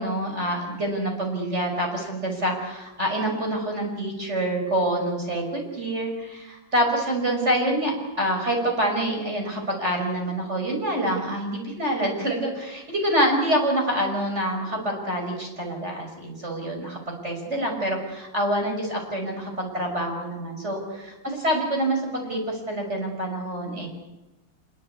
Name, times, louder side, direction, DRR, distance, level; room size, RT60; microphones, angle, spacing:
voice 1, 0.0-23.9, right 1 dB, 35° right, 1 dB, 6.2 m, -26 dB
26.0 x 22.0 x 8.5 m, 1.0 s
omnidirectional pair, 2.1 m